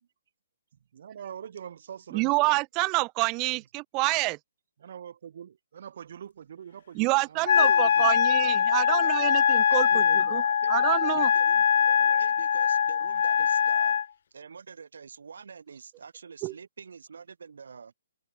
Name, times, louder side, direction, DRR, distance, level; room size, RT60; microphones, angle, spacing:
voice 1, 0.9-2.6 4.8-8.1 9.9-10.4, right 8 dB, 40° right, 1.0 m, -43 dB
voice 2, 2.1-4.4 6.9-10.4 10.7-11.3 16.4-16.5, right 26 dB, 15° right, 0.5 m, -27 dB
Wind instrument woodwind instrument, 7.5-14.1, left 8 dB, 45° left, 0.4 m, -22 dB
voice 3, 8.4-13.9 14.3-17.9, right 5 dB, 65° right, 6.8 m, -46 dB
open air
hypercardioid pair, 180°, 0 cm